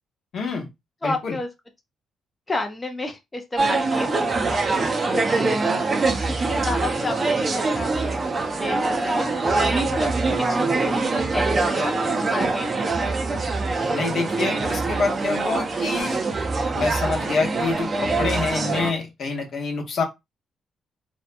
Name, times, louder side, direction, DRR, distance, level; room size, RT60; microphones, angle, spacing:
voice 1, 0.3-0.7 1.0-1.3 13.9-16.2 16.7-20.0, left 4 dB, 60° left, 0.9 m, -26 dB
voice 2, 1.0-1.5 2.5-4.2 4.7-5.5 6.3-8.2 8.6-13.2, left 2 dB, 20° left, 0.5 m, -31 dB
sound 1, 3.6-18.9, right 3 dB, 35° right, 0.5 m, -24 dB
2.6 x 2.2 x 2.5 m
cardioid pair, 90°, 0 cm